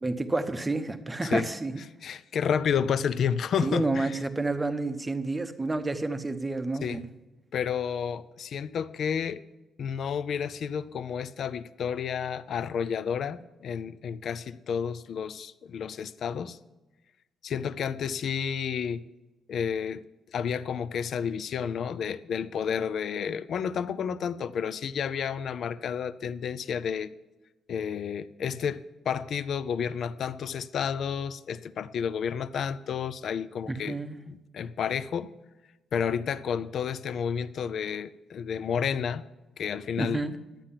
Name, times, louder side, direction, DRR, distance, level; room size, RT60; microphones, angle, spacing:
voice 1, 0.0-1.7 3.6-7.1 33.7-34.2 40.0-40.4, right 2 dB, 10° right, 8 dB, 0.8 m, -29 dB
voice 2, 2.0-4.2 6.8-7.1 7.5-9.4 9.8-16.6 17.4-19.0 19.5-27.1 27.7-34.0 34.3-35.3 35.9-39.3 39.6-40.2, left 7 dB, 50° left, 15 dB, 0.5 m, -31 dB
11.5 x 8.9 x 5.7 m, 1.1 s
cardioid pair, 165°, 0 cm